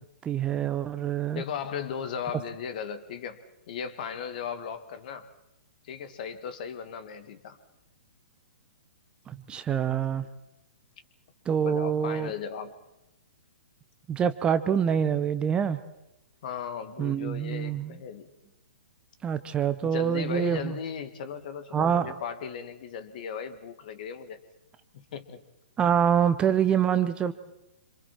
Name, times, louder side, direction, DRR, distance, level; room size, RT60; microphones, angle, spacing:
voice 1, 0.2-1.4 9.3-10.2 11.5-12.3 14.1-15.8 17.0-17.9 19.2-20.7 21.7-22.1 25.8-27.3, right 8 dB, 15° right, 12 dB, 0.9 m, -26 dB
voice 2, 1.3-3.4 3.7-5.3 5.8-7.6 11.6-12.7 16.4-18.3 19.8-24.4 24.9-25.4, left 7 dB, 45° left, 11 dB, 2.2 m, -36 dB
27.5 x 27.0 x 4.5 m, 0.92 s
figure-of-eight pair, 120°, 6 cm